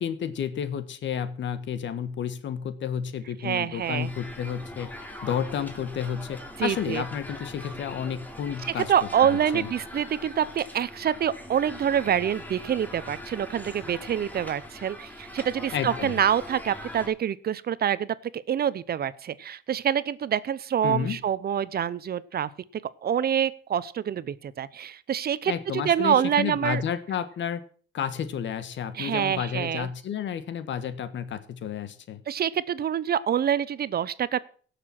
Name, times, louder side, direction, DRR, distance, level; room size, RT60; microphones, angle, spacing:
voice 1, 0.0-4.9 5.2-8.9 9.5-9.7 15.7-16.2 20.8-21.2 25.4-27.6 27.9-32.2, left 8 dB, 65° left, 12 dB, 1.5 m, -31 dB
voice 2, 3.4-4.1 6.6-7.0 8.8-22.5 23.0-26.8 28.9-29.9 32.3-34.4, right 9 dB, 50° right, 18 dB, 0.7 m, -26 dB
sound 1, 3.7-17.1, left 1 dB, 10° left, 2.8 m, -41 dB
16.5 x 6.8 x 5.9 m, 0.43 s
cardioid pair, 90°, 20 cm